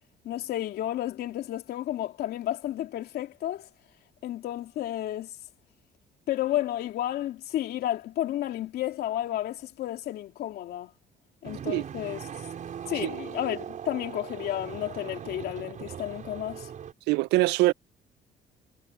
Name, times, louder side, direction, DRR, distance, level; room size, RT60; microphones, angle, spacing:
voice 1, 0.2-3.7 4.2-5.3 6.3-10.9 11.4-12.3 12.9-16.7, left 13 dB, 70° left, 3.0 m, -32 dB
sound 1, 11.4-16.9, right 8 dB, 50° right, 5.3 m, -40 dB
voice 2, 17.1-17.7, right 19 dB, 90° right, 0.5 m, -23 dB
cardioid pair, 110°, 17 cm